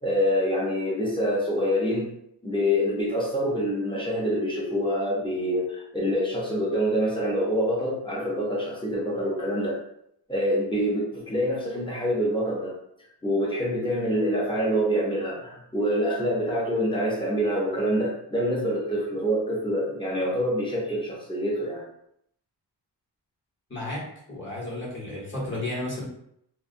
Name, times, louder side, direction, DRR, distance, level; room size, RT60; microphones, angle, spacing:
voice 1, 0.0-2.1 2.4-9.8 10.3-12.7 13.2-21.8, equal, 10° left, -5 dB, 0.7 m, -26 dB
voice 2, 23.7-24.0 24.3-26.0, left 1 dB, 25° left, -7 dB, 1.1 m, -32 dB
2.3 x 2.3 x 2.6 m, 0.74 s
wide cardioid pair, 135°, 42 cm